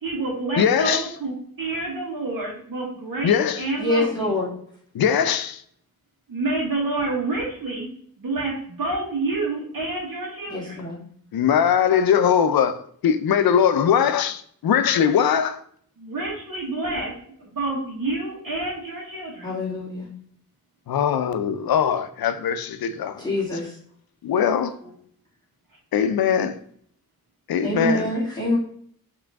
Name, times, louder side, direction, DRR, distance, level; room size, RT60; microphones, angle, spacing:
voice 1, 0.0-4.3 6.3-7.9 8.2-10.8 16.0-17.1 17.5-19.6, right 2 dB, 70° right, 1.5 m, -28 dB
voice 2, 0.6-1.1 3.2-3.6 4.9-5.6 11.3-15.6 20.9-23.3 24.2-24.7 25.9-26.6 27.5-28.1, left 8 dB, 90° left, 0.5 m, -21 dB
voice 3, 3.8-4.5 10.5-11.0 19.4-20.1 23.2-23.7 27.6-28.6, left 1 dB, 10° left, 1.8 m, -25 dB
4.8 x 3.1 x 3.4 m
wide cardioid pair, 90°, 35 cm